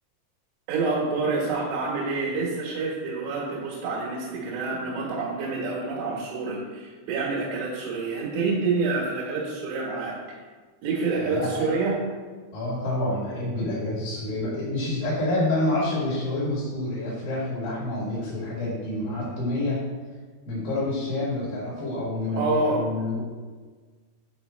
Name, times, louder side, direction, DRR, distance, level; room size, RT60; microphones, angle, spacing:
voice 1, 0.7-10.2 10.8-12.0 22.4-22.8, right 3 dB, 85° right, -5 dB, 4.0 m, -27 dB
voice 2, 11.2-11.7 12.5-19.8 20.5-23.2, left 1 dB, 55° left, -7 dB, 3.1 m, -28 dB
8.5 x 4.9 x 3.0 m, 1.4 s
omnidirectional pair, 5.9 m